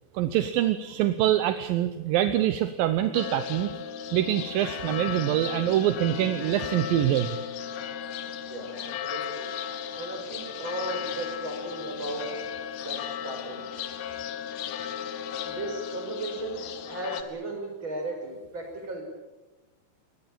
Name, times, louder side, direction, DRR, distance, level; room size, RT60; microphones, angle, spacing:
voice 1, 0.1-3.7 4.1-7.4, right 12 dB, 75° right, 10 dB, 2.3 m, -25 dB
sound 1, 3.1-17.2, left 8 dB, 70° left, 3.2 m, -35 dB
voice 2, 8.5-9.5 10.0-12.3 12.8-13.6 15.4-19.0, right 2 dB, 25° right, 3 dB, 6.3 m, -36 dB
24.0 x 19.5 x 8.8 m, 1.1 s
omnidirectional pair, 4.9 m